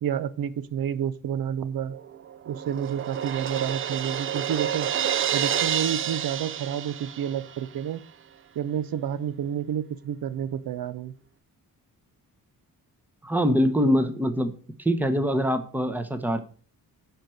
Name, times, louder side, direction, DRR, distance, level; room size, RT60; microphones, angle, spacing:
voice 1, 0.0-2.0 2.5-4.9 5.3-8.0 8.6-11.1, right 9 dB, 75° right, 15 dB, 0.7 m, -30 dB
Crash cymbal, 1.9-7.6, right 9 dB, 40° right, 0.4 m, -29 dB
voice 2, 13.2-14.5 14.8-16.4, equal, 5° right, 8 dB, 0.9 m, -23 dB
10.5 x 4.5 x 6.3 m, 0.41 s
wide cardioid pair, 165°, 35 cm